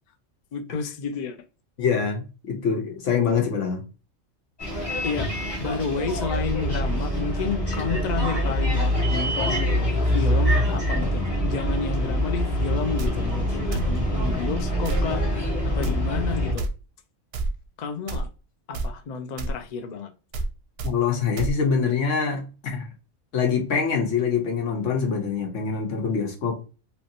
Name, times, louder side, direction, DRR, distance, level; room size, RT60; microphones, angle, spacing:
voice 1, 0.5-1.4 5.0-5.3 5.6-9.7 10.1-16.7 17.8-18.3 18.7-20.1, left 5 dB, 60° left, 0.4 m, -31 dB
voice 2, 1.8-3.8 20.8-22.9 23.3-26.6, left 6 dB, 75° left, 1.2 m, -24 dB
Bus, 4.6-16.5, equal, 20° left, 1.2 m, -25 dB
sound 1, 13.0-13.1 13.7-13.9 14.8-15.1 15.8-16.0 16.6-16.7 17.3-17.5 18.1-18.3 18.7-18.9 19.4-19.6 20.3-20.5 20.8-20.9 21.4-21.5, right 2 dB, 65° right, 0.7 m, -27 dB
3.0 x 2.8 x 2.6 m
omnidirectional pair, 1.3 m